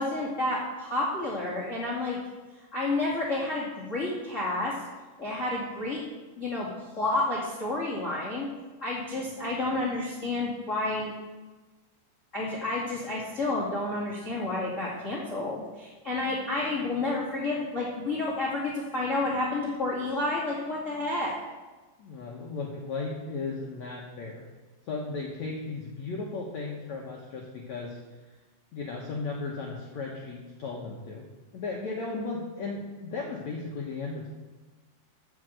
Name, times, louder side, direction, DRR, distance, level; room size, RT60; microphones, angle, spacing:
voice 1, 0.0-2.2 2.7-4.8 5.2-6.0 6.4-8.5 8.8-11.1 12.3-21.3, left 2 dB, 35° left, -6 dB, 1.2 m, -30 dB
voice 2, 22.0-24.4 24.9-28.0 28.7-31.2 31.5-34.3, left 3 dB, 75° left, -2 dB, 1.6 m, -35 dB
14.0 x 6.3 x 7.8 m, 1.2 s
omnidirectional pair, 5.2 m